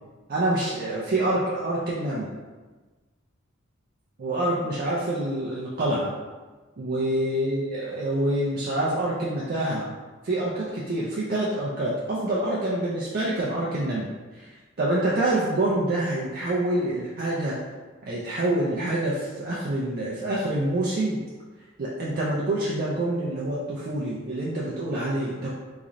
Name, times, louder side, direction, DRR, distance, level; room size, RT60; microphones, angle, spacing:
voice 1, 0.3-2.3 4.2-6.1 6.8-9.9 10.2-14.5 14.8-17.6 18.0-21.2 21.8-25.5, right 1 dB, 45° right, -6 dB, 0.4 m, -26 dB
3.8 x 3.0 x 2.5 m, 1.3 s
head